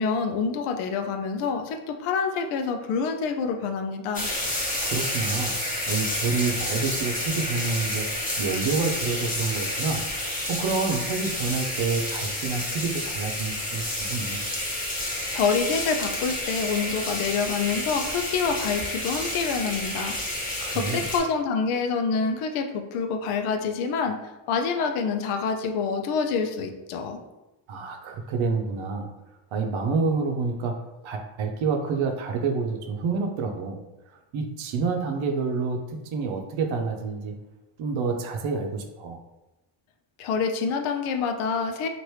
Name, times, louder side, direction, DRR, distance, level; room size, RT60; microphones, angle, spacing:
voice 1, 0.0-4.3 15.3-20.1 20.7-24.2 24.5-27.2 40.2-41.9, left 5 dB, 80° left, 5 dB, 0.6 m, -27 dB
sound 1, 4.1-21.2, left 1 dB, 15° left, 1.0 m, -30 dB
voice 2, 4.8-5.6 5.9-8.1 8.4-14.4 20.6-21.1 27.7-29.1 29.5-33.8 34.3-37.3 37.8-39.2, right 4 dB, 70° right, 4 dB, 0.7 m, -28 dB
3.0 x 2.5 x 3.2 m, 1.0 s
cardioid pair, 75°, 49 cm